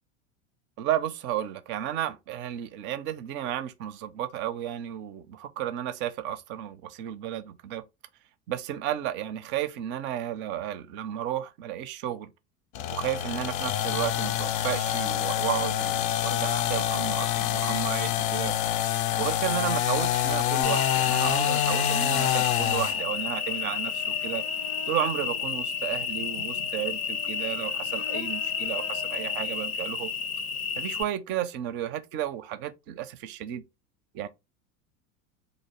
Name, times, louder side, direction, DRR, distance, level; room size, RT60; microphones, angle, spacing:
voice 1, 0.8-7.8 8.5-12.3 12.9-18.6 19.2-24.4 24.9-30.1 30.8-33.6 34.1-34.3, right 11 dB, 25° right, 0.4 m, -33 dB
sound 1, 12.7-23.0, left 11 dB, 40° left, 0.4 m, -26 dB
Cricket, 20.6-31.0, left 6 dB, 80° left, 0.7 m, -31 dB
3.9 x 2.6 x 4.3 m
figure-of-eight pair, 80°, 44 cm